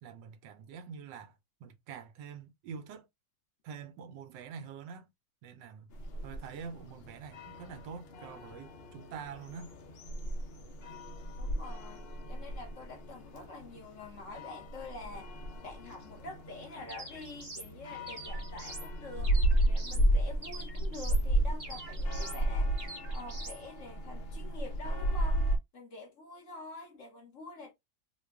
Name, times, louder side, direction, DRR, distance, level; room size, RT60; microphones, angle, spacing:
voice 1, 0.0-3.1 3.6-5.1 5.4-5.9 6.2-9.8, right 6 dB, 85° right, 1.3 m, -46 dB
sound 1, 5.9-25.6, right 1 dB, 85° left, 0.5 m, -33 dB
voice 2, 11.4-15.3 15.6-25.5 25.7-27.7, left 2 dB, 50° left, 1.1 m, -47 dB
sound 2, 16.9-17.7 18.1-18.9 19.2-20.1 20.4-21.3 21.6-22.4 22.8-23.6, right 2 dB, 65° right, 0.3 m, -45 dB
3.0 x 2.2 x 3.4 m
omnidirectional pair, 1.9 m